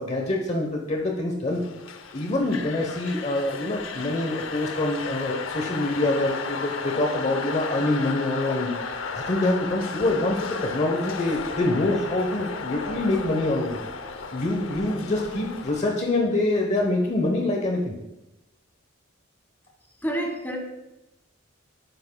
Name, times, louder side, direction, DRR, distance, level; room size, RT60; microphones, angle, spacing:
voice 1, 0.0-1.6 2.1-8.7 9.1-13.8 14.3-17.9, left 2 dB, 35° left, 1 dB, 0.9 m, -25 dB
sound 1, 1.6-15.8, left 4 dB, 75° left, 0.7 m, -34 dB
voice 2, 20.0-20.6, right 1 dB, 10° left, 1 dB, 1.6 m, -28 dB
12.0 x 10.5 x 2.3 m, 0.96 s
head